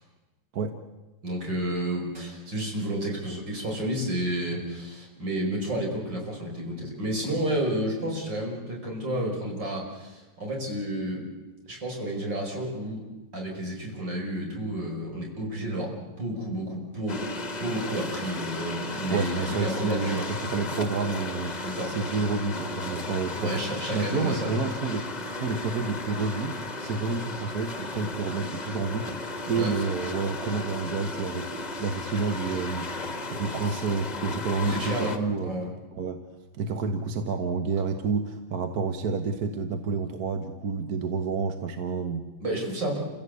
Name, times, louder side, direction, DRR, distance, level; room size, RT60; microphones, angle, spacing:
voice 1, 1.2-11.2 11.7-13.0 13.3-15.9 16.2-17.2 17.6-20.2 21.6-21.9 23.4-24.6 29.6-29.7 34.6-35.7 42.4-43.0, right 1 dB, 75° right, -1 dB, 6.2 m, -31 dB
sound 1, 17.1-35.2, left 2 dB, 25° left, 1.4 m, -35 dB
voice 2, 19.1-23.6 23.9-35.6 35.9-36.3 36.5-42.3, right 4 dB, 55° right, 7 dB, 1.6 m, -29 dB
29.0 x 16.5 x 8.2 m, 1.1 s
omnidirectional pair, 2.0 m